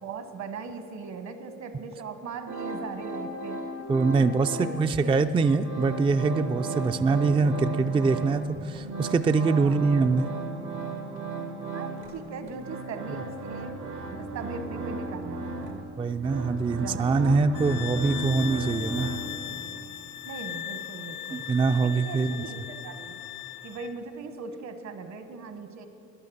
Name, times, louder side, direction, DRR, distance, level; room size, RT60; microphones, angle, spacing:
voice 1, 0.0-3.6 4.1-5.2 7.1-7.2 9.3-10.0 11.7-13.8 14.1-15.8 16.7-17.9 20.2-21.4 21.8-22.6 22.8-23.2 23.6-25.9, right 5 dB, 65° right, 8 dB, 1.3 m, -39 dB
sound 1, 2.5-4.9 5.1-8.5 8.7-19.6, right 3 dB, 90° right, 1.5 m, -35 dB
voice 2, 3.9-10.3 16.0-19.2 21.3-22.4, right 4 dB, 20° right, 9 dB, 0.3 m, -24 dB
sound 2, 17.5-23.9, left 12 dB, 80° left, 0.8 m, -38 dB
12.5 x 10.5 x 7.0 m, 2.8 s
cardioid pair, 90°, 30 cm